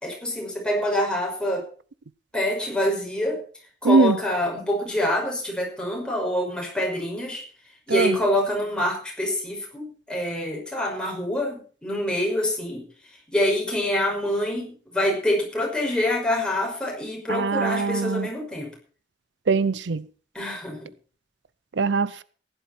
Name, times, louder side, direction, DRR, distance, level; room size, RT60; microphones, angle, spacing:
voice 1, 0.0-1.7 2.3-3.4 3.8-7.4 7.9-12.9 13.3-18.7 20.3-20.9, left 1 dB, 5° left, 5.7 m, -26 dB
voice 2, 3.8-4.2 7.9-8.2 17.3-18.3 19.5-20.0 21.8-22.2, right 4 dB, 80° right, 0.6 m, -21 dB
15.5 x 11.5 x 4.4 m
head